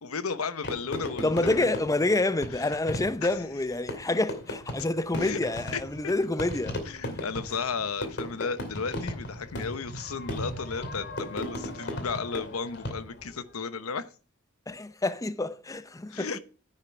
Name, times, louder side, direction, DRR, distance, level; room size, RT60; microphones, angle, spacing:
voice 1, 0.0-1.7 2.5-2.7 3.2-3.3 5.2-5.4 5.7-5.8 6.9-14.1 16.1-16.4, left 5 dB, 85° left, 0.9 m, -34 dB
Fireworks, 0.6-13.3, left 1 dB, 55° left, 2.5 m, -37 dB
voice 2, 1.2-6.8 14.7-16.4, left 2 dB, 15° left, 0.6 m, -28 dB
10.0 x 6.8 x 5.8 m
head